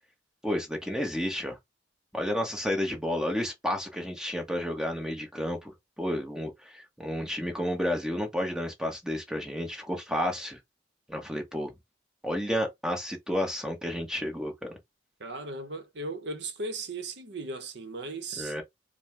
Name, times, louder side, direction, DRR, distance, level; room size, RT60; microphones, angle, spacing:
voice 1, 0.4-1.6 2.1-10.6 11.1-11.7 12.2-14.8 18.4-18.6, equal, 5° right, 1.2 m, -31 dB
voice 2, 15.2-18.5, right 2 dB, 70° right, 0.8 m, -37 dB
4.5 x 2.2 x 3.3 m
head